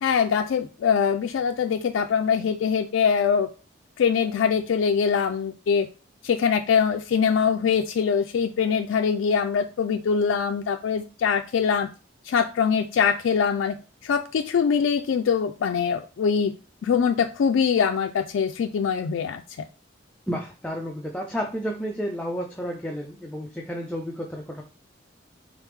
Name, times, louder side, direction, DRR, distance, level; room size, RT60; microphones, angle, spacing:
voice 1, 0.0-3.5 4.0-5.9 6.2-11.9 12.2-13.8 14.0-16.5 16.8-19.4, left 6 dB, 80° left, 5 dB, 0.3 m, -23 dB
voice 2, 20.3-24.6, equal, 5° left, -1 dB, 0.4 m, -31 dB
3.7 x 3.4 x 3.2 m, 0.34 s
head